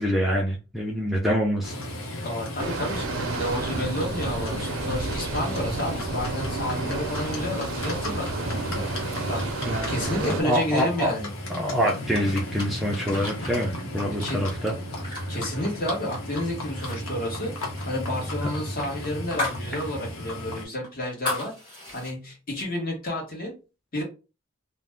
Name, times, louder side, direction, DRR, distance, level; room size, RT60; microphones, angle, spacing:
voice 1, 0.0-1.7 8.7-8.8 9.6-9.9 10.2-11.1 11.5-14.7, equal, ahead, -3 dB, 0.4 m, -26 dB
Livestock farm animals working animals, 1.6-20.6, left 1 dB, 85° left, 0.9 m, -34 dB
voice 2, 2.2-8.9 9.3-11.3 14.2-14.4 15.3-17.5 17.8-21.5 21.9-23.5 23.9-24.0, left 1 dB, 45° left, -1 dB, 1.1 m, -31 dB
sound 1, 2.6-10.4, right 3 dB, 80° right, 0.5 m, -32 dB
sound 2, 11.7-16.3 16.6-17.0 17.2-19.7 20.0-20.1 20.6-22.1, left 2 dB, 20° left, 1.3 m, -36 dB
2.6 x 2.1 x 3.3 m, 0.31 s
head